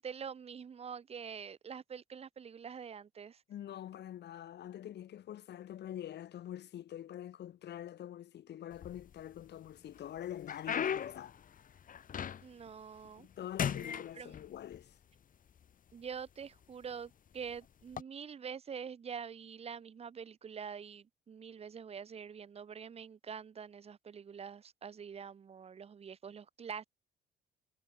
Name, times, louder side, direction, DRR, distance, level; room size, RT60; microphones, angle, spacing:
voice 1, 0.0-3.4 12.4-13.3 13.6-14.4 15.9-26.9, right 7 dB, 30° right, 0.8 m, -45 dB
voice 2, 3.5-11.4 13.2-15.0, left 11 dB, 60° left, 2.4 m, -45 dB
sound 1, 8.7-9.5 9.9-12.7 13.0-13.3 13.6-14.8 15.6-15.7 16.4-16.6 17.8-18.0, left 8 dB, 45° left, 1.6 m, -38 dB
cardioid pair, 100°, 20 cm